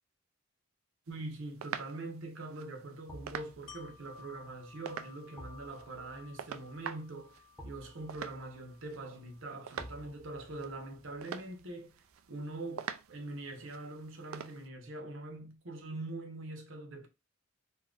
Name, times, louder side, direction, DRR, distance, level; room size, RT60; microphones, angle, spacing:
voice 1, 1.1-11.9 12.3-17.1, right 2 dB, 70° right, 0.8 m, -43 dB
sound 1, 1.1-14.7, right 7 dB, 90° right, 0.4 m, -47 dB
sound 2, 3.1-14.1 14.4-14.5, equal, 15° left, 0.8 m, -55 dB
Wind chime, 3.7-9.5 9.9-10.0, left 6 dB, 70° left, 0.6 m, -57 dB
2.8 x 2.4 x 3.7 m
head